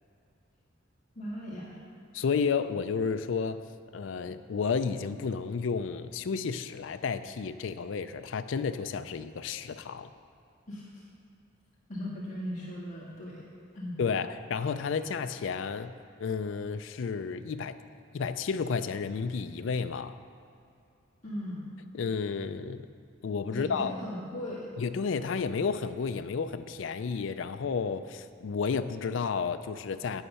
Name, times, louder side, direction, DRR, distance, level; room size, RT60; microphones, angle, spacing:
voice 1, 1.2-1.8 10.7-11.0 11.9-13.5 13.8-14.0 21.2-21.7 23.5-24.7, equal, 40° left, -6 dB, 1.9 m, -38 dB
voice 2, 2.1-3.6 3.9-10.1 14.0-15.9 16.2-17.7 18.1-20.1 21.9-22.9 23.2-23.9 24.8-30.2, left 5 dB, 70° left, 10 dB, 0.4 m, -31 dB
9.5 x 8.2 x 5.6 m, 2.5 s
head